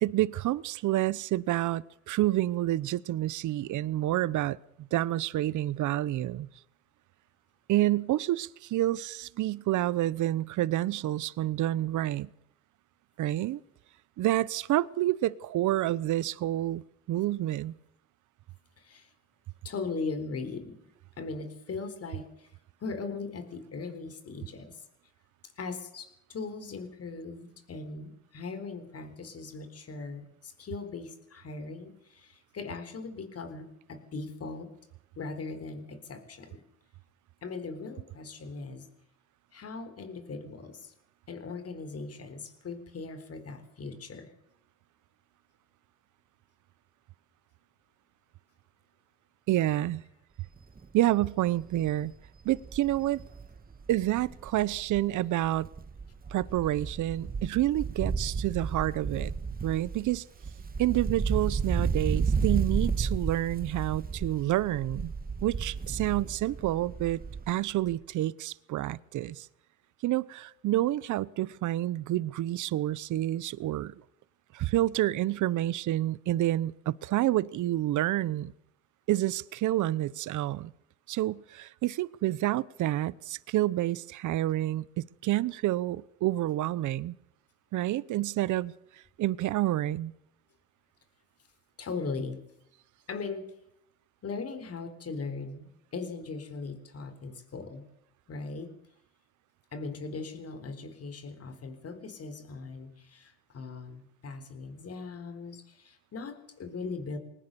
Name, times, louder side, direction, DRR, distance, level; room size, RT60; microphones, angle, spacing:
voice 1, 0.0-6.5 7.7-12.3 13.2-13.6 14.2-16.8 17.1-17.7 49.5-50.0 50.9-52.1 52.4-53.2 53.9-55.7 56.3-59.3 59.6-60.3 60.8-65.1 65.4-67.2 67.5-69.5 70.0-73.9 74.5-78.5 79.1-80.7 81.1-87.1 87.7-88.7 89.2-90.1, right 14 dB, 75° right, 0.8 m, -28 dB
voice 2, 18.8-19.1 19.6-20.8 21.2-22.5 22.8-24.8 25.6-34.7 35.2-36.6 37.4-38.9 39.5-40.9 41.3-44.3 91.8-92.4 93.1-93.5 94.2-97.8 98.3-98.7 99.7-107.2, left 4 dB, 50° left, 4.1 m, -39 dB
Wind, 50.6-50.8 51.2-51.3 51.6-55.1 55.4-67.6 67.9-68.0, right 5 dB, 30° right, 1.6 m, -33 dB
22.0 x 19.0 x 6.9 m
cardioid pair, 90°, 30 cm